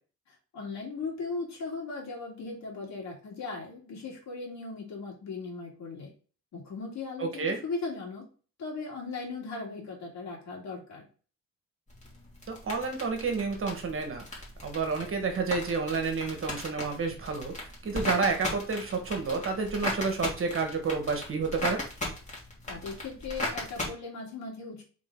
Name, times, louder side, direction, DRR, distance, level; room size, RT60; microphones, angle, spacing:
voice 1, 0.5-6.1 6.5-8.2 8.6-11.0 22.7-24.8, left 4 dB, 65° left, -2 dB, 2.2 m, -38 dB
voice 2, 7.2-7.6 12.5-14.2 14.6-17.5 17.8-21.8, right 4 dB, 45° right, 4 dB, 1.4 m, -30 dB
sound 1, 11.9-23.9, left 2 dB, 25° left, 2.4 m, -38 dB
3.8 x 3.6 x 3.7 m, 0.40 s
cardioid pair, 90°, 30 cm